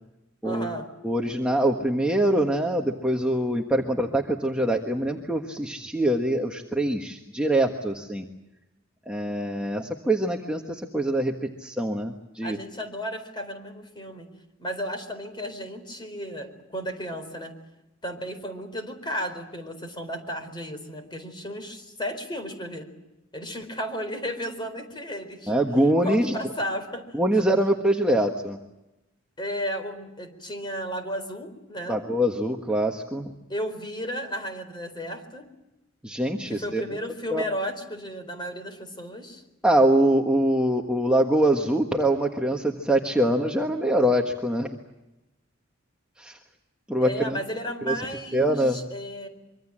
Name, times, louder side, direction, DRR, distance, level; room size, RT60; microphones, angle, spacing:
voice 1, 0.4-0.9 12.4-14.3 14.6-17.5 18.0-22.9 23.3-25.5 26.0-27.2 29.4-32.0 33.5-35.5 36.5-39.4 43.2-43.4 47.0-49.3, equal, 20° left, 7 dB, 4.3 m, -34 dB
voice 2, 1.0-8.2 9.1-12.6 25.5-26.4 27.1-28.6 31.9-33.3 36.0-36.8 37.3-37.4 39.6-44.7 46.2-46.4 46.9-47.4 47.8-48.0 48.3-48.8, right 1 dB, 5° right, 0 dB, 1.5 m, -24 dB
25.5 x 24.5 x 7.5 m, 0.97 s
head